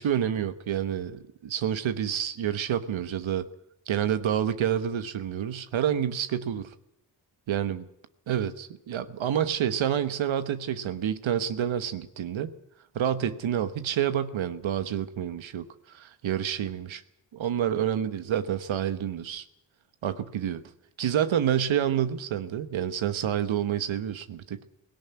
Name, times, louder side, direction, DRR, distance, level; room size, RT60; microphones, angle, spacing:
voice 1, 0.0-3.5 3.9-6.7 7.5-7.8 8.3-12.5 12.9-17.0 17.3-19.4 20.0-20.6 21.0-24.6, right 9 dB, 85° right, 12 dB, 1.2 m, -28 dB
17.0 x 17.0 x 9.4 m, 0.82 s
cardioid pair, 50°, 46 cm